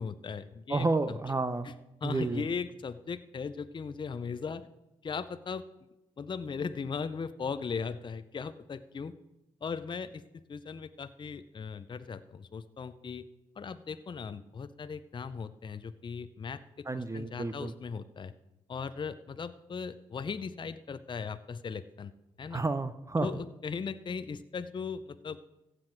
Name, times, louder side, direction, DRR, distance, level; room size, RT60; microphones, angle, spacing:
voice 1, 0.0-1.2 1.6-1.7 2.0-4.7 5.0-5.6 6.2-9.1 9.6-13.3 13.6-18.3 18.7-22.1 22.4-22.6 23.2-25.4, left 5 dB, 40° left, 12 dB, 0.6 m, -38 dB
voice 2, 0.7-1.7 2.0-2.4 16.9-17.7 22.5-23.3, right 3 dB, 25° right, 11 dB, 0.7 m, -30 dB
15.0 x 7.6 x 4.6 m, 0.95 s
supercardioid pair, 45°, 13 cm